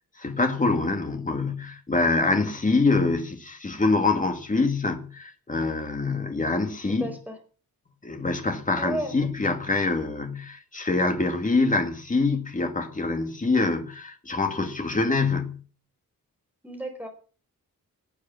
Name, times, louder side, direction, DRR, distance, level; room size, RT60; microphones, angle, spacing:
voice 1, 0.2-7.1 8.0-15.6, left 3 dB, 25° left, 2.3 m, -25 dB
voice 2, 7.0-7.4 8.8-9.1 16.6-17.1, equal, 5° right, 4.8 m, -32 dB
18.0 x 8.6 x 7.3 m
wide cardioid pair, 180°, 34 cm